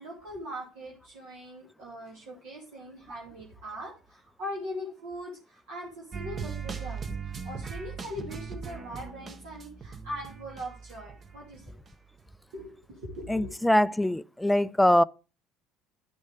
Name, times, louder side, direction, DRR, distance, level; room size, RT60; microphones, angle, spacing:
voice 1, 0.0-11.8 12.5-13.5, equal, 70° right, 2.5 m, -41 dB
sound 1, 6.1-11.9 12.2-12.3, right 6 dB, 35° right, 1.1 m, -39 dB
voice 2, 13.3-15.0, left 1 dB, 5° left, 0.4 m, -23 dB
11.5 x 6.4 x 3.4 m
figure-of-eight pair, 60°, 0 cm